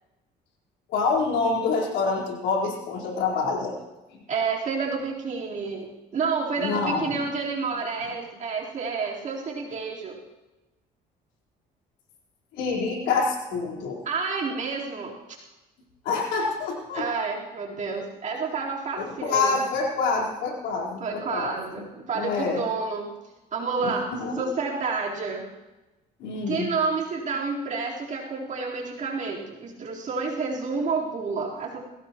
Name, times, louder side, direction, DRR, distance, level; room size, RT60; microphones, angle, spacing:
voice 1, 0.9-3.8 4.1-4.2 6.6-7.2 12.5-14.0 16.0-17.1 19.0-22.6 23.8-24.4 26.2-26.7, left 4 dB, 90° left, -3 dB, 4.3 m, -27 dB
voice 2, 4.3-10.2 14.0-15.1 16.9-19.6 21.0-23.1 23.5-25.4 26.5-31.9, right 4 dB, 45° right, -4 dB, 4.0 m, -29 dB
21.0 x 17.0 x 3.1 m, 1.1 s
cardioid pair, 110°, 17 cm